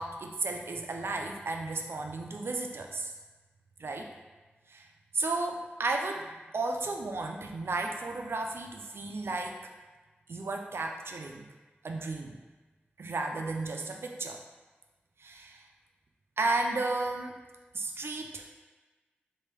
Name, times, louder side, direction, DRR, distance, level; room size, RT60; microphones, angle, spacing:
voice 1, 0.0-3.1 3.8-4.1 4.7-4.9 5.1-6.3 6.5-9.6 10.3-11.5 11.8-12.4 13.0-14.4 15.2-15.7 16.4-17.4 17.7-18.5, right 3 dB, 80° right, 3 dB, 0.4 m, -33 dB
3.3 x 2.6 x 3.2 m, 1.2 s
wide cardioid pair, 65°, 4 cm